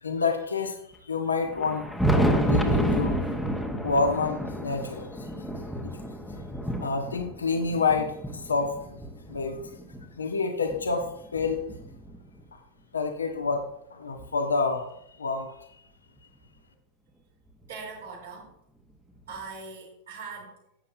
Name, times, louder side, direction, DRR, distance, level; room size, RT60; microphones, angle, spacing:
voice 1, 0.0-1.9 2.1-3.2 3.8-5.3 5.8-6.0 6.8-9.0 9.3-9.6 10.2-11.7 12.9-13.6 13.9-14.8 15.2-15.6, left 4 dB, 75° left, 4 dB, 1.3 m, -28 dB
Thunder, 1.5-10.0 10.7-12.4 13.5-13.6 14.2-14.3 16.2-16.3 17.6-17.7 19.3-19.4, right 1 dB, ahead, 1.3 m, -29 dB
voice 2, 17.7-18.5 19.3-20.6, right 4 dB, 65° right, -5 dB, 3.9 m, -41 dB
11.5 x 8.2 x 2.7 m, 0.72 s
figure-of-eight pair, 90°, 0 cm